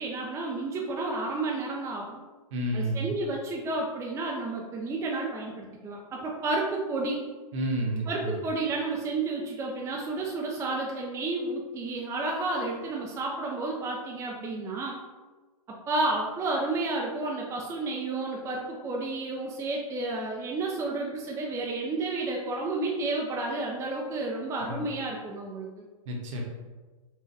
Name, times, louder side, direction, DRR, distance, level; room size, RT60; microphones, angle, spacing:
voice 1, 0.0-2.2 2.7-7.2 8.1-15.0 15.7-25.8, right 2 dB, 15° right, -2 dB, 0.4 m, -31 dB
voice 2, 2.5-3.1 7.5-8.4 24.7-24.8 26.1-26.4, right 1 dB, 55° right, -1 dB, 1.1 m, -30 dB
4.5 x 2.3 x 3.3 m, 1.3 s
hypercardioid pair, 115°, 19 cm